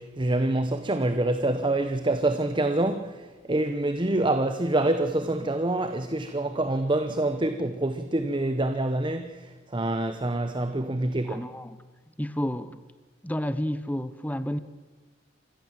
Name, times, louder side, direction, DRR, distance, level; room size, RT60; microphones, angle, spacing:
voice 1, 0.0-11.5, right 2 dB, 25° right, 0.9 m, -26 dB
voice 2, 11.3-11.8 12.2-12.8 13.2-14.6, equal, 10° left, 0.8 m, -30 dB
26.0 x 15.0 x 7.5 m
head